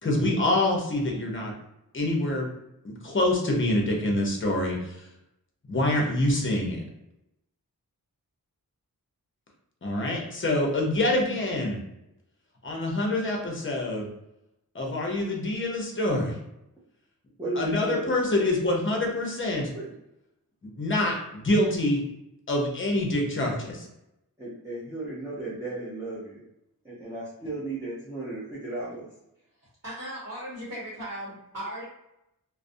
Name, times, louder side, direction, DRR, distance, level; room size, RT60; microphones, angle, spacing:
voice 1, 0.0-1.5 1.9-2.5 2.8-5.0 5.7-6.8 9.8-11.8 12.6-14.1 14.7-16.4 17.6-19.7 20.8-22.0 22.5-23.9, left 1 dB, 35° left, 0 dB, 0.6 m, -26 dB
voice 2, 17.4-18.1 19.7-19.9 24.4-26.4 26.8-29.1, right 2 dB, 10° right, -9 dB, 0.6 m, -34 dB
voice 3, 29.8-31.8, right 1 dB, 40° right, -9 dB, 1.0 m, -37 dB
2.4 x 2.0 x 2.6 m, 0.86 s
wide cardioid pair, 70°, 37 cm